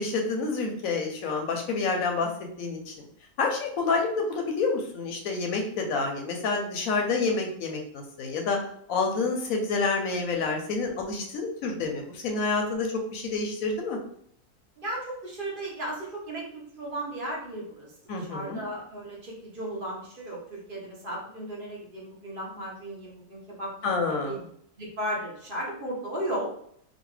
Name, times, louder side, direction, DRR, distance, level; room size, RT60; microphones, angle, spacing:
voice 1, 0.0-2.3 2.6-2.9 3.4-8.6 8.9-14.0 18.1-18.6 23.8-24.4, left 4 dB, 70° left, 2 dB, 1.0 m, -28 dB
voice 2, 14.8-17.9 18.1-24.0 24.2-24.4 24.8-26.5, right 1 dB, 40° right, -3 dB, 0.9 m, -35 dB
3.0 x 2.4 x 3.1 m, 0.66 s
omnidirectional pair, 1.6 m